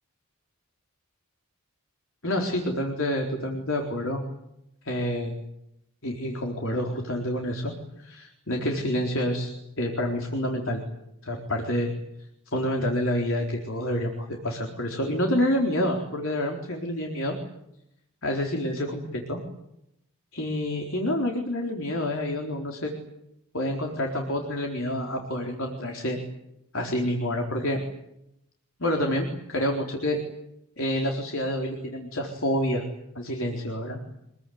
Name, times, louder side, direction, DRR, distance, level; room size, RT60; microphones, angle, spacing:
voice 1, 2.2-4.2 4.9-5.3 6.0-9.5 9.8-10.8 11.2-11.9 12.5-17.3 18.2-19.4 20.3-22.9 23.5-26.2 26.7-27.8 28.8-30.2 30.8-32.8 33.1-34.0, left 1 dB, 65° left, 1 dB, 4.1 m, -28 dB
26.0 x 22.0 x 9.5 m, 0.83 s
head